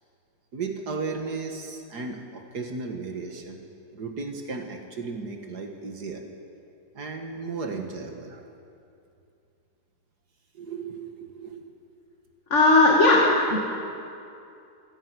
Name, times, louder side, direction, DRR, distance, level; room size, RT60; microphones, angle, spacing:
voice 1, 0.5-3.6 3.9-6.2 6.9-8.4 10.5-11.8, right 4 dB, 70° right, 3 dB, 2.3 m, -35 dB
voice 2, 12.5-13.6, left 2 dB, 45° left, -2 dB, 2.5 m, -17 dB
26.5 x 18.0 x 6.2 m, 2.6 s
omnidirectional pair, 1.8 m